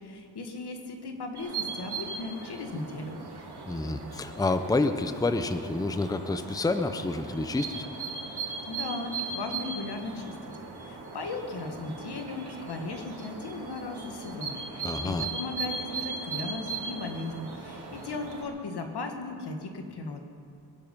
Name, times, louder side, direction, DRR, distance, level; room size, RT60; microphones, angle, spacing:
voice 1, 0.0-3.2 8.7-10.3 10.8-14.6 15.0-20.2, left 3 dB, 90° left, 5 dB, 1.7 m, -37 dB
sound 1, 1.4-18.4, right 4 dB, 80° right, 2.6 m, -38 dB
voice 2, 3.7-7.9 14.8-15.3, left 2 dB, 10° left, 9 dB, 0.6 m, -28 dB
22.0 x 11.0 x 5.3 m, 2.4 s
wide cardioid pair, 140°, 39 cm